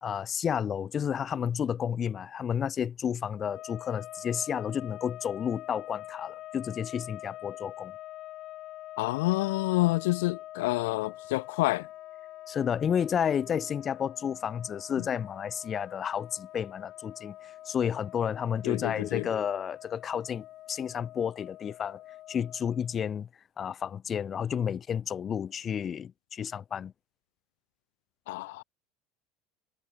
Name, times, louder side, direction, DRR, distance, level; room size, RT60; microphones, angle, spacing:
voice 1, 0.0-7.9 12.5-22.0 22.3-23.3 23.6-26.9, left 8 dB, 35° left, 1.5 m, -31 dB
sound 1, 3.3-23.0, left 14 dB, 50° left, 3.3 m, -45 dB
voice 2, 9.0-11.9 18.6-19.3 28.3-28.6, left 21 dB, 80° left, 1.4 m, -28 dB
supercardioid pair, 100°, 0 cm